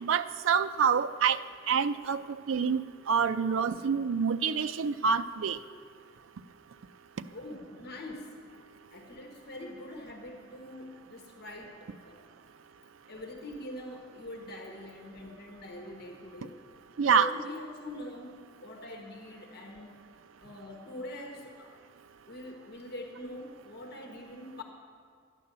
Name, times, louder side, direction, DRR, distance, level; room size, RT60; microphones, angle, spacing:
voice 1, 0.0-1.4 1.7-2.2 2.5-2.8 3.1-5.6 17.0-17.3, right 6 dB, 85° right, 12 dB, 0.5 m, -26 dB
voice 2, 7.3-12.2 13.1-16.6 17.0-18.3 18.6-19.9 20.4-21.8 22.3-24.6, left 1 dB, 55° left, 2 dB, 1.3 m, -43 dB
12.5 x 9.3 x 6.7 m, 2.1 s
head